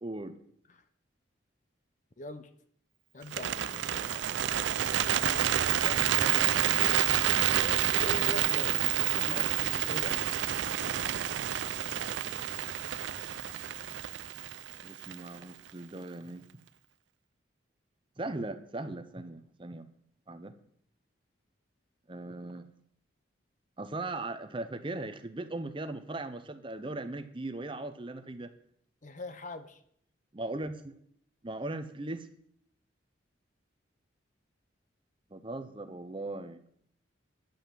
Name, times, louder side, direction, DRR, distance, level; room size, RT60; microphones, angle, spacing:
voice 1, 0.0-0.4 14.8-16.5 18.2-19.9 20.3-20.5 22.1-22.7 23.8-28.5 30.3-30.9 31.4-32.3 35.3-36.6, right 2 dB, 25° right, 10 dB, 0.6 m, -38 dB
voice 2, 2.2-2.5 3.1-4.5 5.0-10.4 29.0-29.8, left 1 dB, 40° left, 10 dB, 0.7 m, -44 dB
Bird, 3.2-15.4, right 11 dB, 65° right, 0.4 m, -29 dB
10.0 x 5.8 x 7.5 m, 0.66 s
head